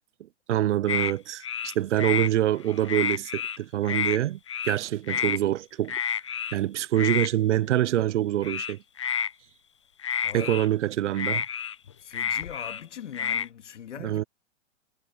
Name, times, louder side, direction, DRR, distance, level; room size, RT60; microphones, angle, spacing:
voice 1, 0.5-1.4 1.8-4.4 4.6-5.9 6.5-8.8 10.3-11.4 14.0-14.2, right 13 dB, 75° right, 0.6 m, -25 dB
sound 1, 0.9-1.1 1.4-2.3 2.7-3.6 3.8-4.2 4.5-4.8 5.1-5.4 5.9-6.6 7.0-7.3 8.4-9.3 10.0-10.7 11.1-12.8 13.1-13.5, left 8 dB, 25° left, 0.4 m, -29 dB
voice 2, 12.0-14.3, left 9 dB, 75° left, 2.6 m, -41 dB
hypercardioid pair, 175°, 36 cm